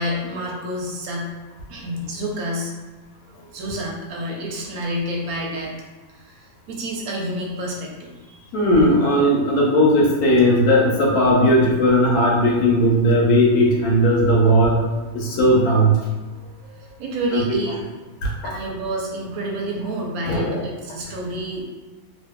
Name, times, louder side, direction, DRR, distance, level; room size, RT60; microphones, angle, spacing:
voice 1, 0.0-1.4 1.7-2.7 3.3-5.7 6.1-8.5 16.3-17.8 18.4-21.7, equal, 80° right, -2 dB, 1.1 m, -29 dB
voice 2, 8.5-14.8 15.1-15.9 17.3-17.4 18.2-18.3 20.2-20.6, equal, 90° left, -2 dB, 1.2 m, -17 dB
2.7 x 2.5 x 2.2 m, 1.3 s
omnidirectional pair, 1.5 m